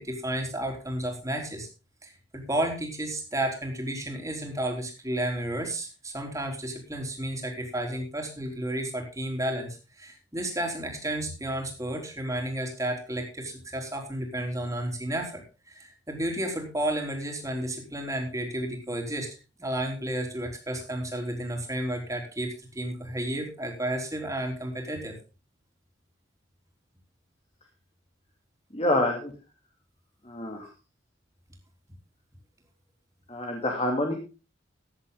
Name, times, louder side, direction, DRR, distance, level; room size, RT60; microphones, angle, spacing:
voice 1, 0.0-1.7 2.0-19.3 19.6-25.2, right 1 dB, 15° right, 1 dB, 3.8 m, -32 dB
voice 2, 28.7-29.3 30.2-30.7 33.3-34.1, left 1 dB, 30° left, 1 dB, 2.6 m, -27 dB
15.0 x 10.0 x 3.9 m, 0.32 s
head